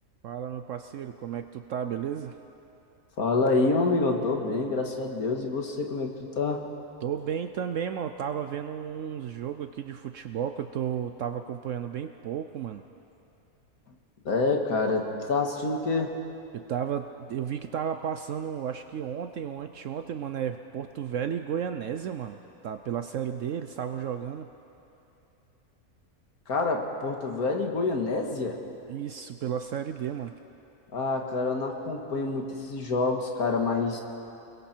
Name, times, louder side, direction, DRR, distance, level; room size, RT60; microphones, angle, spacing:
voice 1, 0.2-2.4 7.0-12.8 16.5-24.5 28.9-30.3, right 8 dB, 65° right, 8 dB, 0.9 m, -33 dB
voice 2, 3.2-6.6 14.3-16.1 26.5-28.6 30.9-34.0, left 3 dB, 80° left, 2 dB, 2.2 m, -27 dB
29.5 x 21.5 x 4.5 m, 2.8 s
omnidirectional pair, 1.5 m